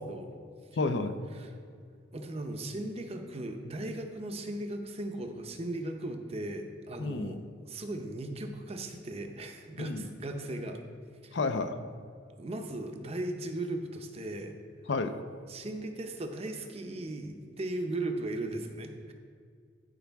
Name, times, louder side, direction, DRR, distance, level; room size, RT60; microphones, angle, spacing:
voice 1, 0.8-1.1 7.0-7.4 9.8-10.1 11.3-11.7 14.9-15.1, left 3 dB, 65° left, 9 dB, 0.5 m, -30 dB
voice 2, 2.1-7.4 7.7-10.8 11.2-11.4 12.4-14.5 15.5-19.1, right 1 dB, 35° right, 5 dB, 0.7 m, -37 dB
13.0 x 4.8 x 3.5 m, 2.1 s
head